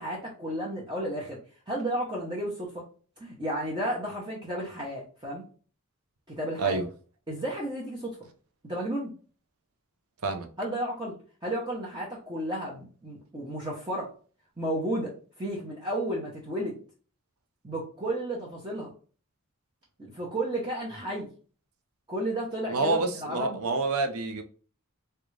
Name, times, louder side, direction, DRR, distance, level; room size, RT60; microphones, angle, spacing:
voice 1, 0.0-1.4 1.7-2.8 3.2-5.4 6.3-6.8 7.3-8.2 8.6-9.1 10.6-11.2 11.4-14.1 14.6-16.8 17.6-18.9 20.0-21.3 22.1-23.6, right 1 dB, 20° right, 0.7 m, -33 dB
voice 2, 22.7-24.4, right 3 dB, 80° right, 0.6 m, -27 dB
3.7 x 2.3 x 3.1 m
head